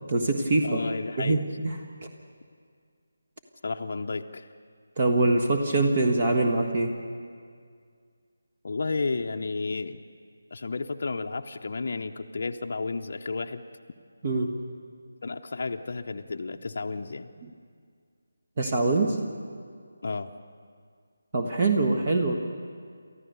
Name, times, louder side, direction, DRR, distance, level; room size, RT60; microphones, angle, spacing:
voice 1, 0.1-0.8 1.2-2.1 5.0-6.9 14.2-14.5 18.6-19.2 21.3-22.3, right 2 dB, 40° right, 4 dB, 1.4 m, -24 dB
voice 2, 0.6-1.4 3.6-4.5 8.6-10.0 10.5-13.6 15.2-17.3 20.0-20.3, left 3 dB, 50° left, 4 dB, 0.7 m, -32 dB
29.5 x 14.0 x 6.9 m, 2.1 s
figure-of-eight pair, 155°, 0 cm